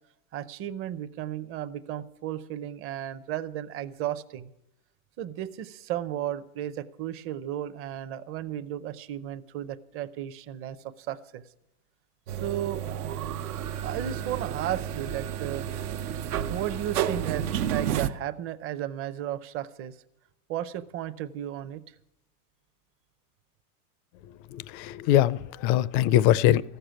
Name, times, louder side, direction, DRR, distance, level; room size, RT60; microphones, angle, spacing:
voice 1, 0.3-4.5 5.2-11.4 12.3-12.8 13.8-15.7 16.5-20.0 20.5-21.8, right 11 dB, 30° right, 12 dB, 0.6 m, -34 dB
sound 1, 12.3-18.1, right 10 dB, 85° right, 0.9 m, -31 dB
voice 2, 24.5-26.6, left 12 dB, 35° left, 19 dB, 0.4 m, -22 dB
14.5 x 6.8 x 9.0 m, 0.85 s
supercardioid pair, 130°, 44 cm